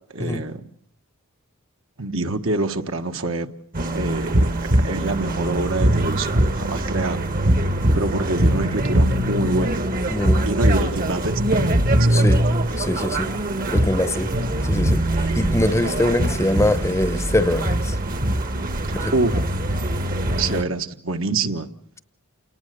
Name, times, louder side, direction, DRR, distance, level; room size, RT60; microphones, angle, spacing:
voice 1, 0.1-0.6 2.0-3.5 3.9-4.5 4.8-7.2 7.9-9.8 10.4-12.4 14.5-14.6 18.9-19.4 20.3-21.7, right 2 dB, 65° right, 1.4 m, -26 dB
sound 1, 3.7-20.6, right 1 dB, 45° right, 1.2 m, -22 dB
voice 2, 10.1-10.5 12.1-12.4 12.8-13.3 13.7-14.3 14.6-18.0 18.9-19.1, left 1 dB, 15° left, 0.9 m, -23 dB
29.0 x 19.0 x 6.7 m
head